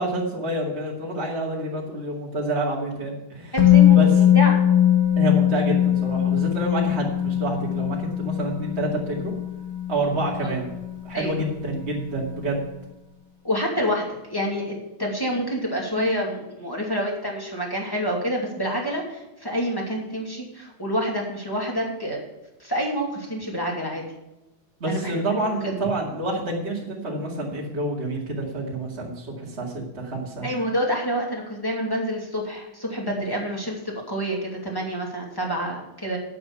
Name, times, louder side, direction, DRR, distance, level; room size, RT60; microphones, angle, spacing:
voice 1, 0.0-3.5 3.9-4.1 5.2-9.3 9.9-10.7 11.0-12.7 24.8-30.5, right 1 dB, 25° right, -4 dB, 2.0 m, -28 dB
voice 2, 3.5-4.6 10.4-10.6 11.1-11.3 13.4-14.0 14.3-22.2 22.6-24.0 24.8-25.8 30.4-36.2, equal, 10° left, -2 dB, 2.0 m, -28 dB
Musical instrument, 3.6-11.5 11.8-11.9, left 11 dB, 45° left, 1.1 m, -20 dB
9.4 x 7.7 x 7.0 m, 0.96 s
omnidirectional pair, 3.7 m